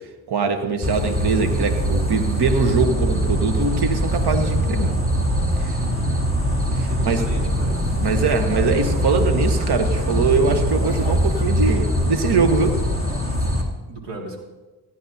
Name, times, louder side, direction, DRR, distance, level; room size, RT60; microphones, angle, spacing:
voice 1, 0.3-4.9 5.6-5.8 6.7-7.2 8.0-12.8, right 4 dB, 65° right, 7 dB, 1.2 m, -22 dB
sound 1, 0.8-13.6, equal, 30° right, 2.7 m, -22 dB
voice 2, 6.9-7.8 10.3-10.6 13.9-14.4, right 1 dB, 85° right, 0 dB, 2.3 m, -36 dB
sound 2, 8.1-13.2, right 1 dB, 10° right, 1.8 m, -38 dB
16.5 x 10.5 x 2.7 m, 1.2 s
cardioid pair, 50°, 42 cm